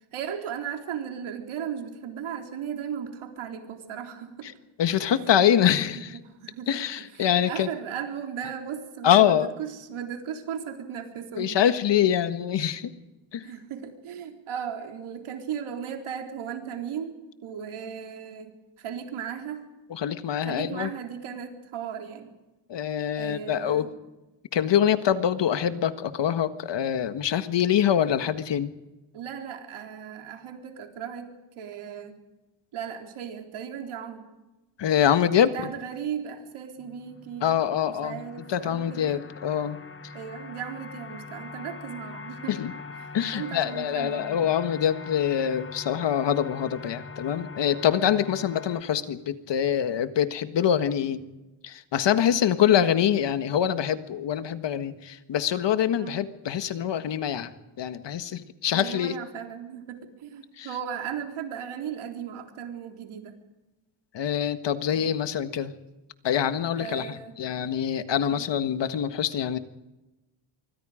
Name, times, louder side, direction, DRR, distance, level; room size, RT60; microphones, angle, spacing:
voice 1, 0.1-4.5 5.9-11.6 13.4-19.6 20.4-22.3 23.2-23.9 29.1-32.2 32.7-34.3 35.4-37.5 37.9-39.2 40.1-42.6 43.3-44.4 56.0-56.2 58.7-63.4 64.9-65.2 66.8-67.4 68.3-68.5, right 8 dB, 75° right, 4 dB, 4.0 m, -36 dB
voice 2, 4.8-6.2 6.7-7.7 9.0-9.5 11.4-12.9 13.3-13.4 19.9-20.9 22.7-23.9 24.5-28.7 34.8-35.5 37.4-38.2 38.5-39.8 42.5-42.7 43.1-51.2 51.6-57.5 57.8-59.1 60.6-60.7 64.1-65.7 66.2-69.6, left 9 dB, 55° left, 10 dB, 1.7 m, -24 dB
sound 1, 36.8-48.8, left 4 dB, 25° left, 1.5 m, -42 dB
26.0 x 24.0 x 5.1 m, 1.0 s
cardioid pair, 110°, 50 cm